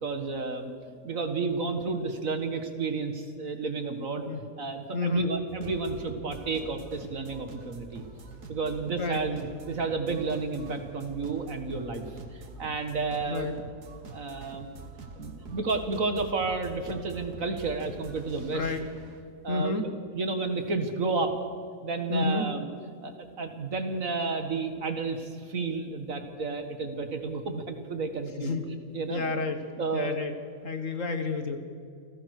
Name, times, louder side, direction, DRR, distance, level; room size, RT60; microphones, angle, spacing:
voice 1, 0.0-0.7 1.0-4.3 4.6-8.0 8.5-12.0 12.3-13.5 14.1-14.7 15.2-18.7 19.4-19.8 20.1-21.3 21.8-22.7 23.0-28.5 28.9-29.2 29.8-30.2, right 4 dB, 55° right, 7 dB, 2.1 m, -31 dB
voice 2, 4.9-5.3 8.9-9.2 13.3-13.6 18.5-18.9 19.5-19.9 22.1-22.5 28.4-28.6 29.1-29.6 29.9-30.3 30.6-31.6, left 3 dB, 50° left, 8 dB, 1.8 m, -30 dB
sound 1, 5.5-19.2, right 3 dB, 80° right, 2.2 m, -45 dB
28.5 x 16.5 x 6.6 m, 2.3 s
omnidirectional pair, 1.7 m